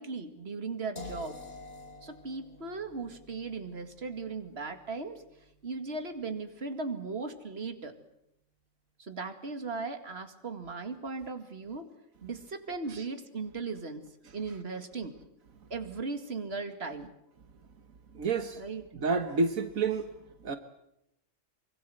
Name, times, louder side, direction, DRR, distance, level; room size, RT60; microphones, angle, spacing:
voice 1, 0.0-1.4 2.0-5.2 5.6-8.0 9.0-11.9 12.2-14.1 14.3-15.2 15.7-17.1 18.6-18.8, right 4 dB, 50° right, 7 dB, 2.5 m, -37 dB
sound 1, 1.0-6.9, left 2 dB, 30° left, 3.1 m, -50 dB
voice 2, 18.1-18.6 18.9-20.1 20.4-20.6, right 4 dB, 80° right, 8 dB, 1.7 m, -29 dB
24.5 x 24.0 x 7.8 m, 0.80 s
omnidirectional pair, 1.4 m